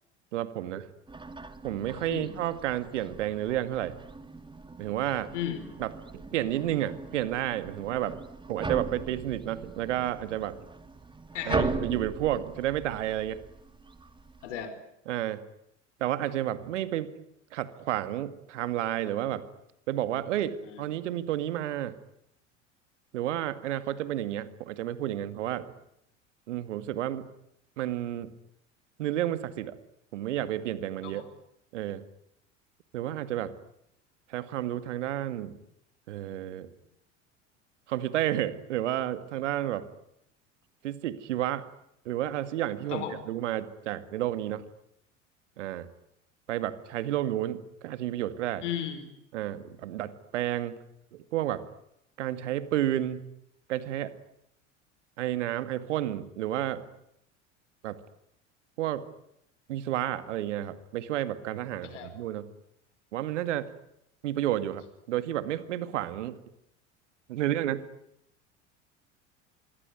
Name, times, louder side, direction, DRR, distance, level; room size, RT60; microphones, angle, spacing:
voice 1, 0.3-0.9 1.6-4.0 4.8-5.3 5.8-8.2 8.5-10.6 11.5-13.4 15.1-15.4 16.0-17.1 17.5-19.5 19.9-21.9 23.1-25.7 26.5-27.3 27.8-28.3 29.0-29.8 30.1-31.2 31.7-32.0 32.9-33.5 34.3-35.6 36.1-36.7 37.9-39.9 40.8-41.7 42.1-44.7 45.6-45.9 46.5-48.6 49.3-50.8 51.1-51.6 52.2-53.2 53.7-54.1 55.2-56.8 57.8-58.0 58.8-59.0 59.7-62.5 63.1-63.7 64.2-66.4 67.3-67.9, right 12 dB, 70° right, 13 dB, 2.2 m, -31 dB
sound 1, 1.1-14.7, right 3 dB, 15° right, 2.3 m, -39 dB
voice 2, 11.3-11.7 14.4-14.7 20.6-20.8 31.0-31.2 42.9-43.2 48.6-49.1 61.8-62.1, left 9 dB, 70° left, 10 dB, 4.8 m, -35 dB
26.5 x 22.5 x 9.6 m, 0.78 s
figure-of-eight pair, 75°, 37 cm